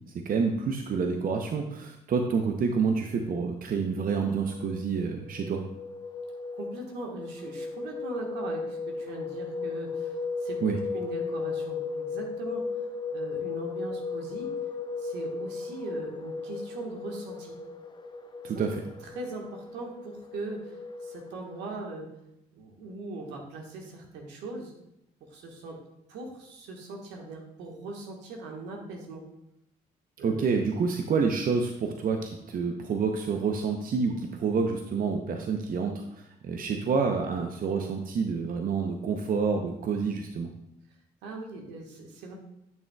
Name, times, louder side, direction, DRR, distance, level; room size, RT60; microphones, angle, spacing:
voice 1, 0.2-5.6 10.6-10.8 18.4-18.8 30.2-40.5, right 5 dB, 50° right, 4 dB, 0.7 m, -28 dB
sound 1, 4.0-21.7, left 4 dB, 25° left, 0.8 m, -36 dB
voice 2, 6.5-10.2 10.4-12.7 13.1-14.5 15.0-17.6 18.5-18.6 19.1-20.7 21.0-22.1 22.5-24.7 25.3-25.8 26.1-29.2 30.2-30.5 41.2-42.4, right 2 dB, 80° right, 1 dB, 1.4 m, -40 dB
10.5 x 6.3 x 2.3 m, 0.82 s
hypercardioid pair, 50°, 18 cm